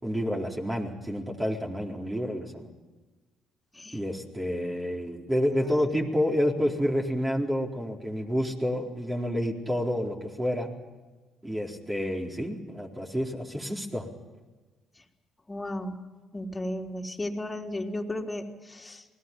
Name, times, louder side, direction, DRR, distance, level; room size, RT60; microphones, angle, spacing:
voice 1, 0.0-2.7 3.9-10.7 11.4-14.1, equal, 15° right, 0 dB, 4.2 m, -29 dB
voice 2, 5.4-6.0 15.5-16.0 16.3-19.1, left 1 dB, 20° left, 0 dB, 3.7 m, -35 dB
28.0 x 19.5 x 5.5 m, 1.3 s
cardioid pair, 85°, 0 cm